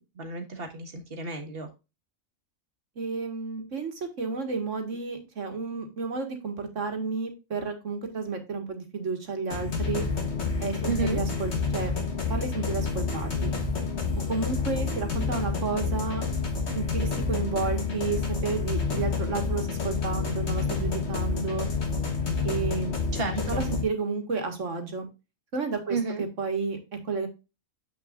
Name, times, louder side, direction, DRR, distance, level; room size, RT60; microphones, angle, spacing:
voice 1, 0.1-1.7 10.8-11.2 23.1-23.6 25.9-26.2, right 4 dB, 45° right, 5 dB, 1.6 m, -32 dB
voice 2, 3.0-10.1 10.6-12.0 12.3-13.6 14.3-16.3 16.7-21.7 22.4-23.0 23.3-25.0 25.5-26.8 27.0-27.3, right 4 dB, 65° right, 5 dB, 1.9 m, -31 dB
sound 1, 9.5-23.8, left 4 dB, 55° left, 1.9 m, -29 dB
7.5 x 6.3 x 2.4 m, 0.28 s
omnidirectional pair, 1.4 m